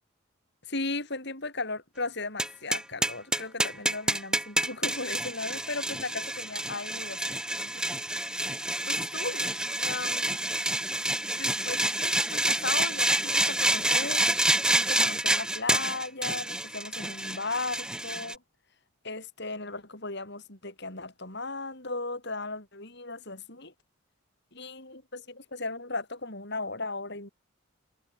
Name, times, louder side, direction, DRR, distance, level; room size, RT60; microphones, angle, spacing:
voice 1, 0.7-7.9 8.9-10.5 11.3-14.3 14.7-18.4 19.0-23.7 24.5-27.3, left 3 dB, 55° left, 7.9 m, -36 dB
sound 1, 2.4-18.3, right 1 dB, 5° right, 2.9 m, -28 dB
head